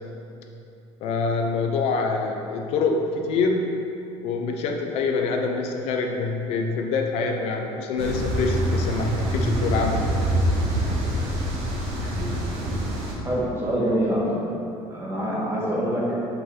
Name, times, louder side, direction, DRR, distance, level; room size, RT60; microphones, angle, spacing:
voice 1, 1.0-3.8 4.2-10.0 13.9-14.0, left 4 dB, 60° left, 3 dB, 0.5 m, -25 dB
sound 1, 8.0-13.1, equal, 70° right, 1.4 m, -25 dB
voice 2, 13.2-14.3 14.9-16.1, right 1 dB, 20° right, -6 dB, 1.5 m, -25 dB
5.6 x 3.9 x 5.6 m, 2.7 s
cardioid pair, 150°, 12 cm